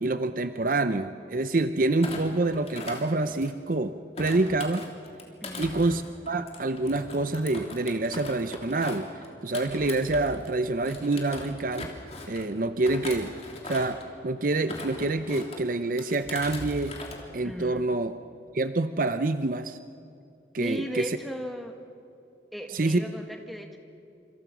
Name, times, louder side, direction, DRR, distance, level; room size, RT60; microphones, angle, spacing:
voice 1, 0.0-4.9 5.6-9.1 9.4-11.9 12.3-13.3 13.6-17.0 17.3-18.1 18.5-19.8 20.5-21.0 22.7-23.0, right 2 dB, 50° right, 11 dB, 0.7 m, -27 dB
Thump thud, 2.0-3.7 4.2-10.5 10.8-12.5 12.8-14.1 14.5-15.6 16.0-17.2 17.5-17.8, left 2 dB, 35° left, 3.1 m, -40 dB
voice 2, 5.4-5.8 17.4-17.9 20.6-21.8 22.5-23.8, equal, ahead, 4 dB, 1.9 m, -36 dB
27.0 x 27.0 x 6.2 m, 2.6 s
head